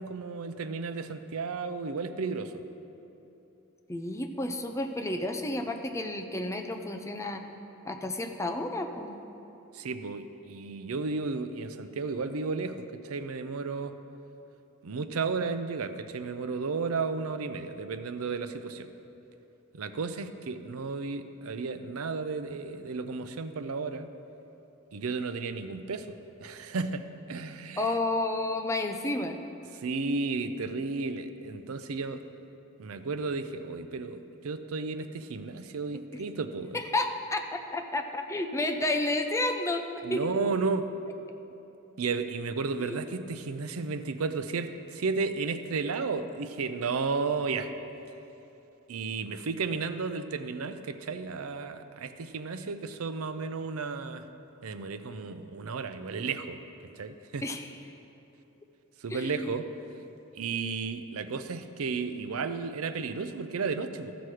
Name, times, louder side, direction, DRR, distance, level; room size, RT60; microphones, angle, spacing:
voice 1, 0.0-2.6 9.7-13.9 14.8-18.9 19.7-24.1 24.9-27.0 27.3-27.9 29.8-32.2 32.8-36.8 40.0-40.9 42.0-47.7 48.9-54.2 54.6-56.6 57.0-57.4 59.0-59.7 60.4-64.1, right 4 dB, 75° right, 10 dB, 0.5 m, -33 dB
voice 2, 3.9-7.4 7.8-9.2 27.8-29.4 36.1-36.2 36.7-39.8 40.1-40.3 42.8-43.0 57.4-57.7 59.1-59.5, left 2 dB, 15° left, 5 dB, 0.5 m, -31 dB
14.0 x 6.1 x 4.8 m, 2.9 s
head